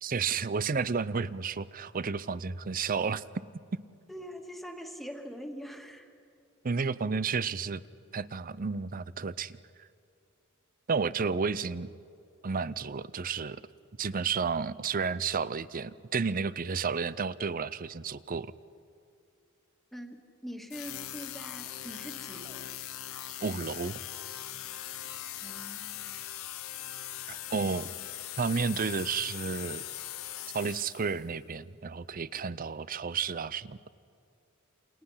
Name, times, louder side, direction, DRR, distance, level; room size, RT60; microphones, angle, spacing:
voice 1, 0.0-3.2 6.6-7.8 8.1-9.6 10.9-11.9 12.4-13.6 14.0-18.5 23.4-24.0 27.3-27.9 28.4-29.8 30.5-33.8, right 5 dB, 45° right, 17 dB, 0.6 m, -31 dB
voice 2, 4.1-6.1 19.9-22.7 25.4-26.2, equal, ahead, 3 dB, 1.9 m, -43 dB
sound 1, 20.7-31.3, left 12 dB, 85° left, 1.0 m, -41 dB
28.5 x 28.5 x 5.7 m, 2.5 s
head